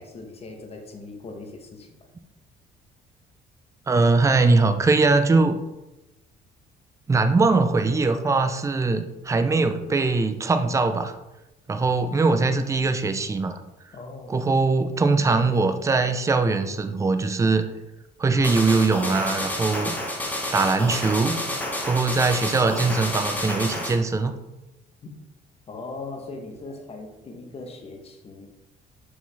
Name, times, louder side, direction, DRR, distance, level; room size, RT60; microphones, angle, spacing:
voice 1, 0.0-1.9 13.9-14.5 25.0-25.1 25.7-28.5, left 3 dB, 35° left, 3 dB, 1.1 m, -39 dB
voice 2, 3.9-5.6 7.1-11.2 11.7-13.6 14.3-17.6 18.2-20.0 20.5-21.4 21.8-24.3, right 3 dB, 20° right, 8 dB, 0.5 m, -21 dB
sound 1, 18.4-24.0, left 1 dB, 10° left, 1.2 m, -29 dB
5.7 x 5.0 x 3.4 m, 0.96 s
cardioid pair, 110°, 17 cm